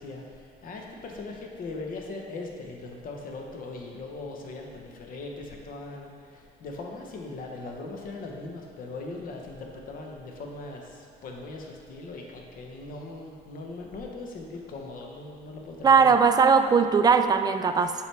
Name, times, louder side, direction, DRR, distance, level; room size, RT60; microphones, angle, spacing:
voice 1, 0.0-16.2, left 3 dB, 55° left, 1 dB, 1.0 m, -39 dB
voice 2, 15.8-17.9, right 5 dB, 25° right, 8 dB, 0.3 m, -19 dB
7.2 x 4.7 x 3.4 m, 2.2 s
cardioid pair, 110°, 17 cm